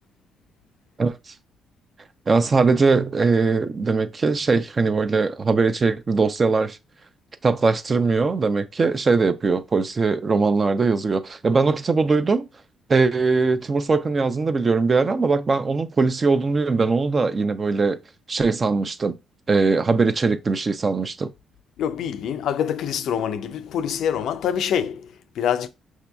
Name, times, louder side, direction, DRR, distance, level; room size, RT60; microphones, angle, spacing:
voice 1, 1.0-1.3 2.3-6.8 7.4-12.5 12.9-18.0 18.3-19.2 19.5-21.3, right 4 dB, 35° right, 0.5 m, -21 dB
voice 2, 21.8-25.7, left 9 dB, 75° left, 0.4 m, -25 dB
6.0 x 2.7 x 2.3 m
cardioid pair, 90°, 0 cm